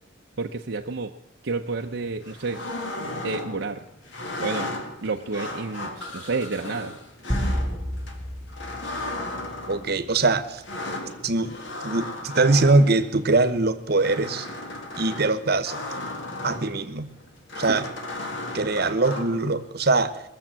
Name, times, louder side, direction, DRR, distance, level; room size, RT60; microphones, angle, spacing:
voice 1, 0.4-1.1 1.4-2.6 3.2-3.8 4.4-4.7 5.0-7.0 17.7-17.9, right 4 dB, 75° right, 2 dB, 0.7 m, -30 dB
sound 1, 1.8-19.6, left 2 dB, 80° left, 2.1 m, -36 dB
sound 2, 7.3-9.9, equal, 10° left, 1.4 m, -30 dB
voice 2, 9.7-10.6 11.2-11.6 11.8-14.5 15.0-15.8 16.4-17.1 17.6-17.9 18.5-20.2, right 3 dB, 55° right, 11 dB, 1.0 m, -22 dB
21.0 x 7.2 x 7.5 m, 0.84 s
head